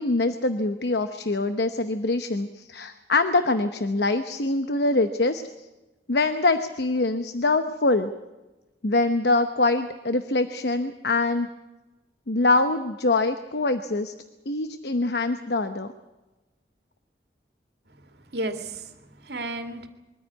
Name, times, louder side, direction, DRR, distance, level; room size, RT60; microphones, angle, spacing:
voice 1, 0.0-5.4 6.1-8.1 8.8-11.5 12.3-14.1 14.5-15.9, left 2 dB, 70° left, 9 dB, 0.9 m, -24 dB
voice 2, 18.3-19.9, right 2 dB, 70° right, 6 dB, 2.2 m, -33 dB
23.0 x 14.5 x 9.5 m, 1.1 s
head